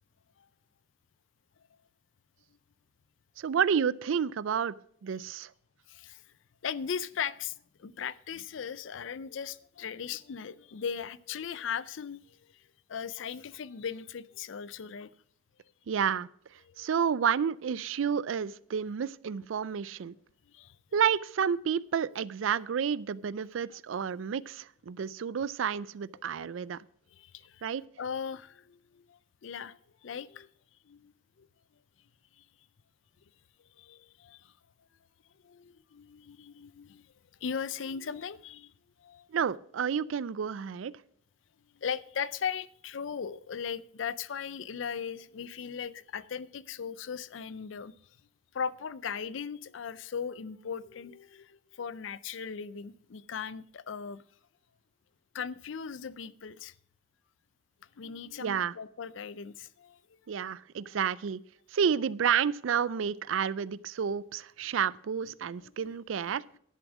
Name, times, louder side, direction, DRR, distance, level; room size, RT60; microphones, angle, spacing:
voice 1, 3.4-4.8 5.0-5.5 15.9-16.3 16.8-20.1 20.9-26.8 27.6-27.8 39.3-40.9 58.4-58.7 60.3-61.4 61.7-66.4, right 7 dB, 85° right, 0.4 m, -30 dB
voice 2, 5.9-6.2 6.6-12.4 12.9-15.1 16.7-16.9 18.8-18.9 20.5-20.8 26.4-26.6 27.1-27.6 28.0-30.5 30.9-31.1 31.4-31.5 33.8-34.5 35.4-37.1 37.4-38.7 39.0-39.3 41.8-47.9 48.5-54.2 55.3-56.7 58.0-60.0 60.8-61.0 65.6-65.9, left 7 dB, 75° left, 0.5 m, -38 dB
11.5 x 7.2 x 6.1 m
head